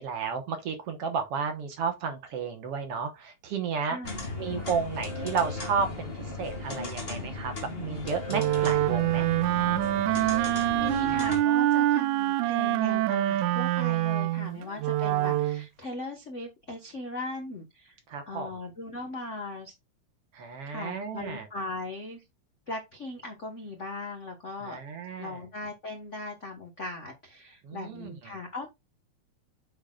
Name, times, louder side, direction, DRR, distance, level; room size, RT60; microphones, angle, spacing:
voice 1, 0.0-4.0 4.4-7.5 7.8-9.3 14.5-14.6 18.1-18.5 20.3-21.5 24.6-25.4 27.6-28.1, right 6 dB, 60° right, 1.9 m, -32 dB
voice 2, 3.8-4.3 10.1-18.0 18.3-19.7 20.6-22.2 22.7-24.8 25.2-28.7, left 2 dB, 75° left, 0.6 m, -39 dB
sound 1, 4.0-11.4, left 3 dB, 25° left, 1.3 m, -36 dB
Wind instrument woodwind instrument, 8.3-15.7, right 14 dB, 85° right, 2.1 m, -25 dB
8.4 x 6.3 x 2.4 m
omnidirectional pair, 3.5 m